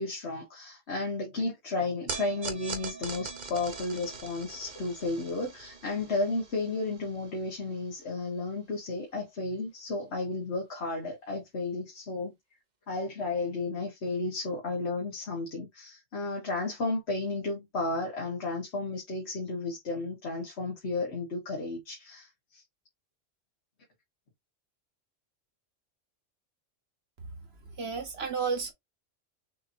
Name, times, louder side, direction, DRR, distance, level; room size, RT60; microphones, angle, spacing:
voice 1, 0.0-12.3 12.9-22.6, left 3 dB, 55° left, 1.7 m, -33 dB
sound 1, 2.1-8.5, right 4 dB, 40° right, 1.0 m, -42 dB
voice 2, 27.8-28.7, right 5 dB, 55° right, 1.5 m, -31 dB
6.6 x 2.9 x 2.7 m
omnidirectional pair, 1.3 m